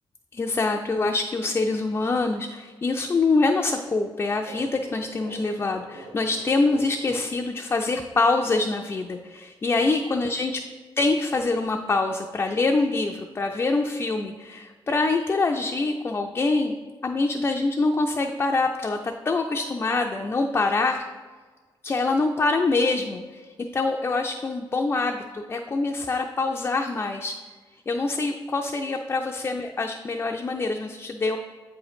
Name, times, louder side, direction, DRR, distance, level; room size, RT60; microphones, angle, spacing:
voice 1, 0.3-10.6 11.0-21.0 21.8-23.5 23.7-27.3 27.9-31.4, left 3 dB, 25° left, 2 dB, 0.4 m, -25 dB
sound 1, 4.4-8.2, right 2 dB, 75° right, 0.9 m, -45 dB
8.0 x 3.0 x 4.8 m, 1.4 s
wide cardioid pair, 145°, 9 cm